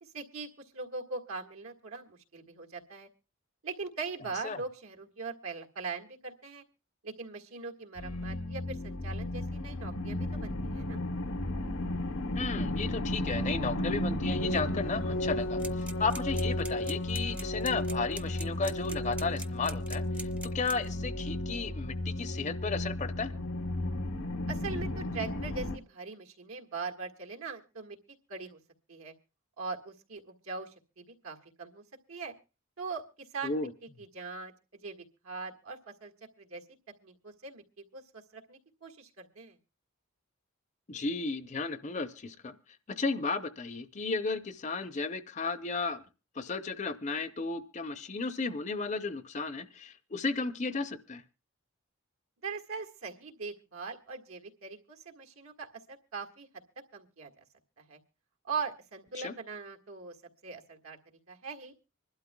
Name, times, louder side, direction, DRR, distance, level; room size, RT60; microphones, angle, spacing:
voice 1, 0.0-3.1 3.6-6.6 7.0-11.0 24.5-28.0 28.3-28.6 28.9-29.1 29.6-31.8 32.1-32.3 32.8-33.7 34.0-36.1 36.4-36.6 37.0-37.6 37.9-39.6 52.4-56.5 56.9-57.4 57.8-58.0 58.4-60.2 60.4-61.0 61.3-61.7, right 4 dB, 80° right, 3 dB, 1.7 m, -41 dB
breaking world, 8.0-25.8, left 1 dB, 75° left, 0.9 m, -33 dB
voice 2, 12.3-20.3 20.5-23.3 33.4-33.7 40.9-42.6 42.9-46.0 46.4-51.2 59.1-59.3, left 4 dB, 35° left, 13 dB, 0.6 m, -34 dB
sound 1, 15.6-20.9, right 2 dB, 5° right, 0.6 m, -42 dB
25.5 x 12.0 x 2.2 m, 0.31 s
head